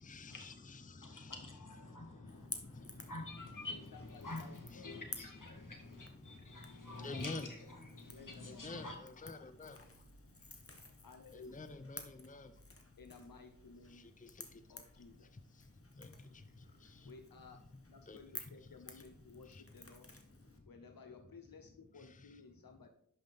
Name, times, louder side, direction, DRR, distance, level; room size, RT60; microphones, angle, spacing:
voice 1, 0.0-1.8 2.1-2.3 2.6-5.4 5.7-6.0 7.0-7.5 8.4-9.8 11.3-12.5 13.9-14.5 16.0-16.1 16.8-17.1 18.1-18.2 18.9-19.0 19.5-19.6 22.0-22.3, left 3 dB, 25° left, 0.6 m, -50 dB
voice 2, 1.0-7.5 7.9-8.9, left 2 dB, 65° left, 1.8 m, -48 dB
Crackle / Crack, 2.3-20.6, left 3 dB, 40° left, 1.3 m, -54 dB
voice 3, 3.7-5.1 8.1-8.6 11.0-11.6 13.0-14.1 14.7-15.3 17.1-20.1 20.7-22.9, left 4 dB, 80° left, 0.7 m, -56 dB
11.0 x 5.8 x 3.5 m
wide cardioid pair, 55°, 34 cm